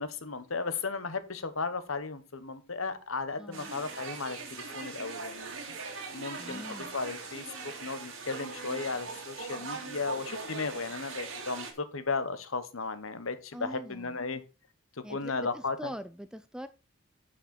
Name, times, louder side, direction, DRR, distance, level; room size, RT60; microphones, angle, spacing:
voice 1, 0.0-5.8 6.1-14.4 15.1-15.9, left 4 dB, 70° left, 1.2 m, -35 dB
voice 2, 3.4-3.7 6.3-6.9 13.5-14.2 15.0-16.7, equal, 5° right, 0.4 m, -43 dB
sound 1, 3.5-11.7, right 4 dB, 70° right, 2.4 m, -41 dB
8.9 x 7.3 x 4.4 m
head